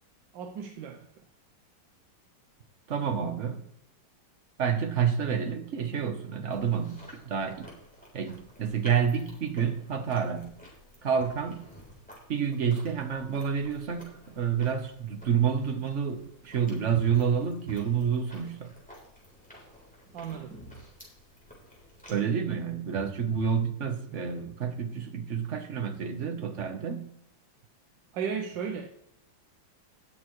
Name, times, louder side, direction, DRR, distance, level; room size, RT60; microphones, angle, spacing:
voice 1, 0.3-1.1 20.1-20.6 22.1-22.4 24.1-24.3 28.1-28.9, right 7 dB, 75° right, 1.4 m, -35 dB
voice 2, 2.9-3.7 4.6-7.7 8.1-10.5 11.0-11.7 12.3-18.7 22.1-27.1, right 7 dB, 45° right, 1.1 m, -29 dB
Chewing mastication, 6.5-22.1, equal, 5° left, 3.6 m, -52 dB
18.0 x 6.7 x 3.2 m
omnidirectional pair, 2.2 m